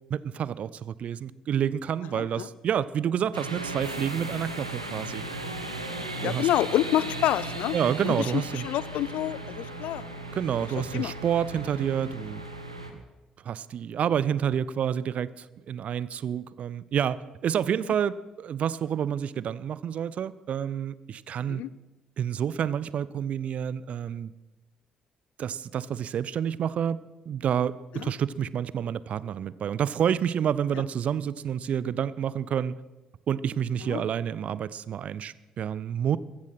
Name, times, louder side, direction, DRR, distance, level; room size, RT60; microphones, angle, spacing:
voice 1, 0.1-5.2 6.2-6.5 7.7-8.7 10.3-12.4 13.4-21.6 22.2-24.3 25.4-32.7 33.3-36.2, right 8 dB, 50° right, 20 dB, 0.5 m, -29 dB
voice 2, 2.1-2.5 6.2-7.8 8.0-8.3 8.5-10.0 10.9-11.1 21.5-21.7 27.9-28.1 33.9-34.0, left 13 dB, 60° left, 19 dB, 0.5 m, -28 dB
sound 1, 3.3-12.9, right 2 dB, 90° right, 1.0 m, -36 dB
14.5 x 14.0 x 5.8 m, 1.1 s
figure-of-eight pair, 45°, 3 cm